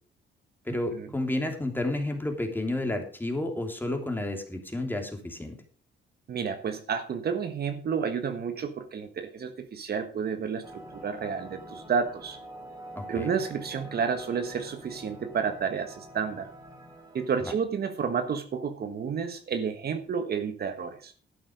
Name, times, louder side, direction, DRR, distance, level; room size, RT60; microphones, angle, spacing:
voice 1, 0.6-5.5 12.9-13.3, left 1 dB, 10° left, 4 dB, 3.0 m, -31 dB
voice 2, 6.3-12.4 13.1-16.5 17.1-21.1, right 6 dB, 50° right, 8 dB, 1.4 m, -31 dB
sound 1, 10.6-17.3, right 1 dB, 20° right, 3.7 m, -46 dB
11.5 x 8.8 x 5.1 m, 0.41 s
cardioid pair, 90°, 20 cm